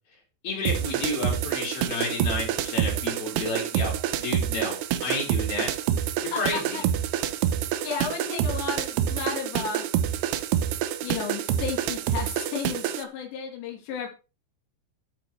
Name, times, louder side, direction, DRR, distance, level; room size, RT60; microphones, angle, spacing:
voice 1, 0.4-4.8 5.0-5.7 6.2-6.9, left 2 dB, 55° left, -1 dB, 7.0 m, -31 dB
sound 1, 0.7-13.0, right 10 dB, 75° right, 2.9 m, -27 dB
voice 2, 6.3-6.8 7.8-9.9 11.0-14.1, left 6 dB, 75° left, 1 dB, 4.8 m, -33 dB
12.5 x 8.6 x 4.7 m, 0.32 s
omnidirectional pair, 5.2 m